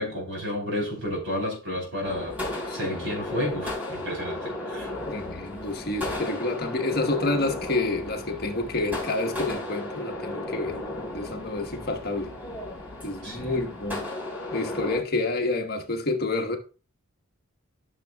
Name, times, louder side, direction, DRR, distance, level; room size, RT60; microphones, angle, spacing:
voice 1, 0.0-4.9 13.2-13.6, left 1 dB, 60° right, 3.7 m, -31 dB
sound 1, 2.0-15.0, left 1 dB, 10° right, 3.5 m, -35 dB
voice 2, 2.7-3.1 5.0-10.8 11.1-12.3 13.0-14.1 14.5-16.6, left 2 dB, 45° left, 1.3 m, -29 dB
12.5 x 6.6 x 2.3 m
head